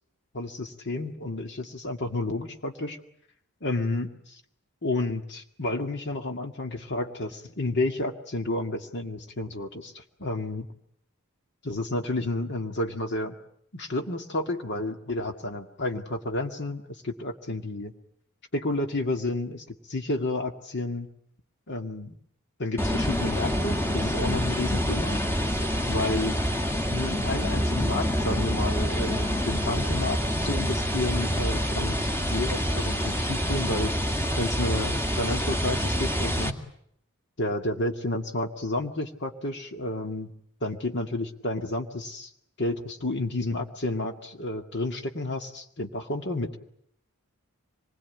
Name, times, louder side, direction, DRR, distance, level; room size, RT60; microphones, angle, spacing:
voice 1, 0.3-3.0 3.6-4.1 4.8-10.7 11.6-13.4 13.7-17.9 18.5-21.1 21.7-22.2 22.6-25.2 25.9-26.4 26.9-33.9 34.4-36.6 37.4-40.3 40.6-42.3 42.6-46.6, left 2 dB, 55° left, 5 dB, 2.1 m, -31 dB
sound 1, 22.8-36.5, equal, 10° left, 2.2 m, -27 dB
26.0 x 21.0 x 9.3 m, 0.71 s
head